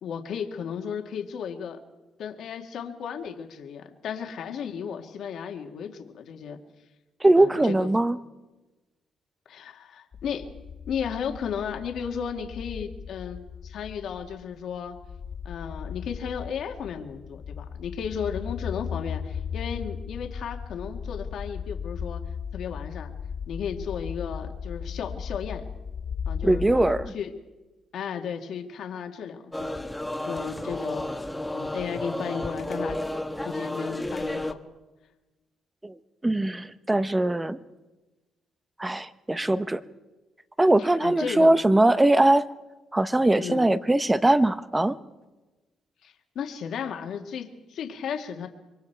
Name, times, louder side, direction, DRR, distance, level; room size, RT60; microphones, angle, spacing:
voice 1, 0.0-1.8 2.2-6.6 7.4-7.9 9.5-10.5 10.9-15.0 15.5-22.2 22.5-23.1 23.5-25.6 26.3-26.6 27.1-27.3 27.9-29.8 30.2-31.2 31.5-33.0 33.5-34.6 41.0-41.5 43.4-43.7 46.0-48.5, left 7 dB, 70° left, 4 dB, 1.9 m, -34 dB
voice 2, 7.2-8.2 26.4-27.1 35.8-37.6 38.8-39.8 40.6-42.5 42.9-45.0, right 1 dB, 15° right, 13 dB, 1.0 m, -21 dB
sound 1, 10.1-27.1, left 7 dB, 50° left, 0.6 m, -36 dB
sound 2, 29.5-34.5, left 1 dB, 5° left, 1.2 m, -32 dB
26.0 x 23.0 x 4.6 m, 1.2 s
cardioid pair, 90°, 0 cm